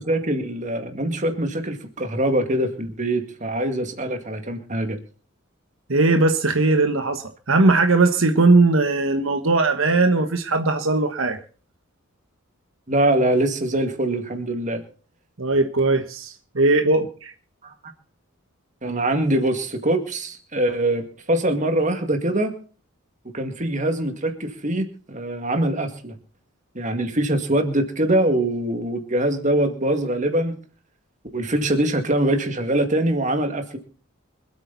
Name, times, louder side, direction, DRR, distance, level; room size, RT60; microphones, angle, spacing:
voice 1, 0.0-5.0 12.9-14.8 17.6-17.7 18.8-22.5 23.3-26.1 26.7-30.6 31.3-33.8, right 1 dB, 35° right, 6 dB, 2.2 m, -23 dB
voice 2, 5.9-11.4 15.4-17.3, right 3 dB, 70° right, 6 dB, 1.3 m, -19 dB
25.5 x 8.8 x 4.1 m, 0.40 s
head